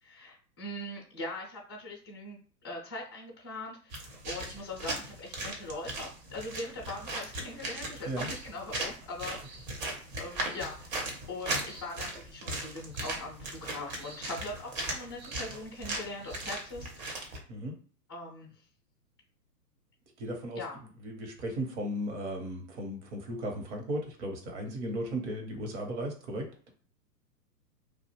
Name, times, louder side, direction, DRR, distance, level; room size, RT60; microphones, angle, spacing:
voice 1, 0.0-2.4 2.6-9.7 10.2-17.3 18.1-18.5 20.6-20.7, left 2 dB, 20° left, -4 dB, 0.3 m, -41 dB
sound 1, 3.9-17.4, right 2 dB, 30° right, 0.6 m, -38 dB
voice 2, 20.2-20.6 21.0-26.5, equal, 45° right, 3 dB, 1.0 m, -36 dB
2.5 x 2.3 x 2.9 m, 0.42 s
figure-of-eight pair, 115°, 48 cm